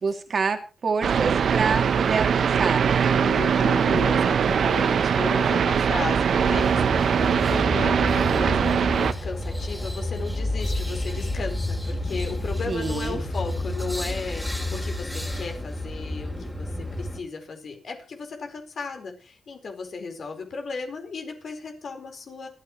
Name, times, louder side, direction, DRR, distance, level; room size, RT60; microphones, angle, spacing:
voice 1, 0.0-3.1 12.7-13.2, right 5 dB, 50° right, 5 dB, 2.8 m, -27 dB
sound 1, 1.0-9.1, right 7 dB, 70° right, 0.9 m, -21 dB
voice 2, 3.0-22.5, left 4 dB, 60° left, 4 dB, 4.5 m, -35 dB
sound 2, 6.4-17.2, left 1 dB, 10° left, 3.8 m, -30 dB
28.0 x 9.7 x 3.2 m, 0.33 s
cardioid pair, 100°, 0 cm